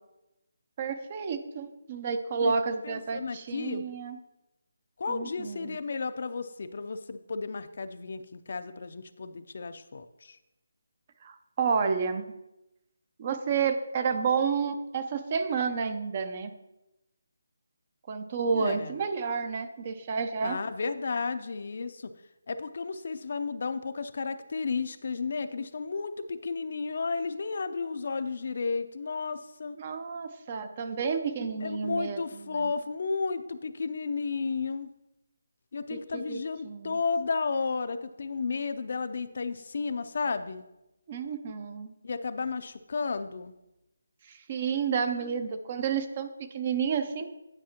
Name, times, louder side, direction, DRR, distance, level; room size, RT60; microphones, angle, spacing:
voice 1, 0.8-4.2 5.1-5.8 11.2-12.3 13.2-16.5 18.1-20.6 29.8-32.7 35.9-37.0 41.1-41.9 44.2-47.3, right 5 dB, 30° right, 9 dB, 0.6 m, -30 dB
voice 2, 2.8-3.8 5.0-10.4 18.5-18.9 20.4-22.1 22.5-29.8 31.6-34.9 35.7-40.6 42.0-43.5, left 4 dB, 55° left, 11 dB, 0.4 m, -33 dB
9.9 x 6.4 x 2.9 m, 0.93 s
figure-of-eight pair, 165°, 0 cm